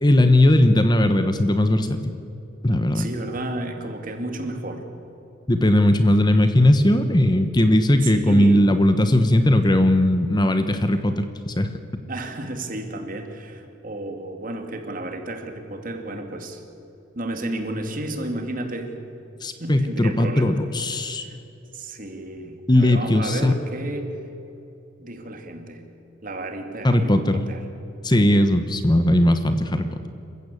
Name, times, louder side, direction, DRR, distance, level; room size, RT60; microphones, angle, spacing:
voice 1, 0.0-2.1 2.6-3.1 5.5-11.7 19.4-21.2 22.7-23.5 26.8-27.4 28.0-29.9, left 1 dB, 20° left, 8 dB, 1.0 m, -18 dB
voice 2, 2.9-4.8 8.0-8.6 12.1-16.6 17.1-18.9 19.6-20.6 21.2-21.4 21.7-24.1 25.0-25.8 26.2-27.6, right 1 dB, 45° right, 5 dB, 2.7 m, -32 dB
27.0 x 15.5 x 8.5 m, 2.9 s
head